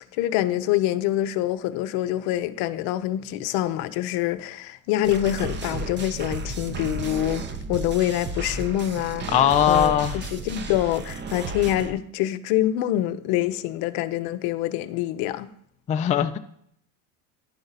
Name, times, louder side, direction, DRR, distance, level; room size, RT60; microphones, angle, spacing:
voice 1, 0.1-9.3 9.7-15.5, left 13 dB, 70° left, 0.6 m, -25 dB
sound 1, 5.0-11.9, right 3 dB, 30° right, 0.7 m, -33 dB
voice 2, 9.3-10.2 15.9-16.4, left 10 dB, 20° left, 0.3 m, -20 dB
11.5 x 3.9 x 4.0 m
supercardioid pair, 105°, 37 cm